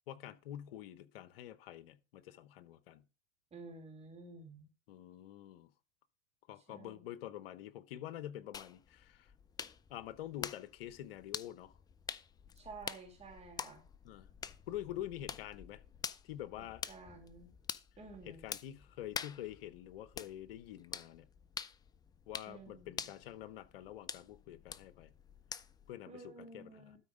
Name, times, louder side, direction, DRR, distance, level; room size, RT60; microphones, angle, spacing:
voice 1, 0.1-3.0 4.9-5.7 6.5-9.3 9.9-11.7 14.0-14.3 14.7-15.8 16.2-16.8 18.3-21.3 22.3-25.1 25.9-26.9, left 12 dB, 70° left, 1.0 m, -47 dB
voice 2, 3.5-4.7 6.7-7.1 12.6-13.8 16.6-17.5 18.0-18.5 22.5-23.1 26.0-27.0, right 3 dB, 20° right, 3.1 m, -52 dB
sound 1, 8.5-25.9, left 7 dB, 15° left, 0.4 m, -47 dB
12.5 x 4.4 x 5.1 m
hypercardioid pair, 110°, 30 cm